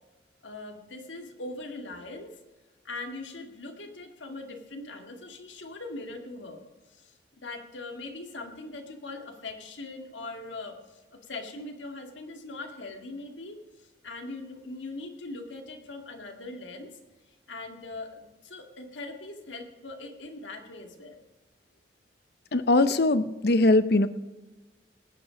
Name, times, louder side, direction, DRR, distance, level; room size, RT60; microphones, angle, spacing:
voice 1, 0.4-2.3 2.8-6.6 6.9-16.9 17.5-21.2, left 2 dB, 80° left, 4 dB, 2.1 m, -41 dB
voice 2, 22.5-24.1, left 2 dB, 55° left, 13 dB, 0.7 m, -21 dB
19.0 x 8.3 x 5.1 m, 1.2 s
head